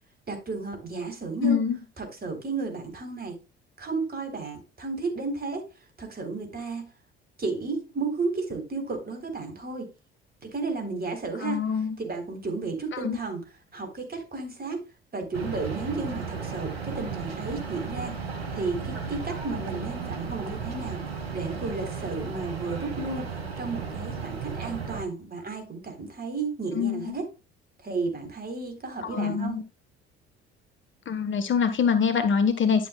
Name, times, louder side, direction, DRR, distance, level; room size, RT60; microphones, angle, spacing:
voice 1, 0.3-1.6 2.0-3.4 3.8-5.7 6.0-6.9 7.4-9.9 10.4-11.6 12.0-13.4 13.7-14.8 15.1-21.0 21.3-27.3 27.8-29.6, right 3 dB, 30° right, 3.8 m, -33 dB
voice 2, 1.4-1.8 11.4-12.0 12.9-13.2 26.7-27.2 29.0-29.6 31.1-32.9, left 6 dB, 40° left, 1.3 m, -25 dB
sound 1, 15.3-25.0, right 5 dB, 80° right, 1.6 m, -35 dB
11.0 x 7.7 x 2.3 m
figure-of-eight pair, 55°, 30 cm